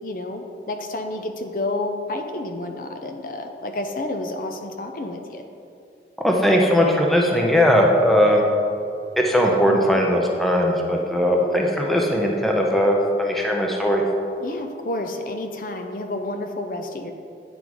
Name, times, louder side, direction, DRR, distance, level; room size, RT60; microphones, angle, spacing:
voice 1, 0.0-5.4 9.6-10.0 14.4-17.1, left 2 dB, 50° left, 5 dB, 0.5 m, -30 dB
voice 2, 6.2-8.4 9.2-14.0, equal, ahead, -1 dB, 0.6 m, -19 dB
9.0 x 3.9 x 4.7 m, 2.5 s
head